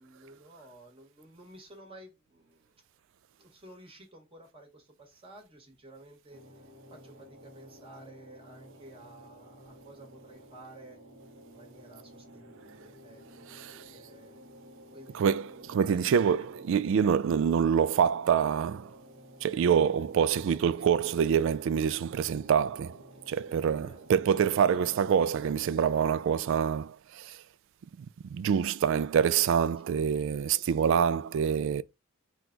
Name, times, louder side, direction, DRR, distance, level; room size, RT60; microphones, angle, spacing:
voice 1, 0.0-2.8 3.4-6.4 6.9-11.0 11.4-13.4 13.9-14.4 14.9-15.3 15.7-16.2 23.8-24.0 24.8-24.9 30.1-30.2, right 1 dB, 25° right, 1.4 m, -53 dB
sound 1, 6.3-26.2, equal, 40° right, 1.1 m, -53 dB
voice 2, 13.5-13.8 15.1-19.0 19.4-27.4 28.0-28.1 28.3-31.8, right 7 dB, 60° right, 0.3 m, -26 dB
6.0 x 2.3 x 3.8 m
head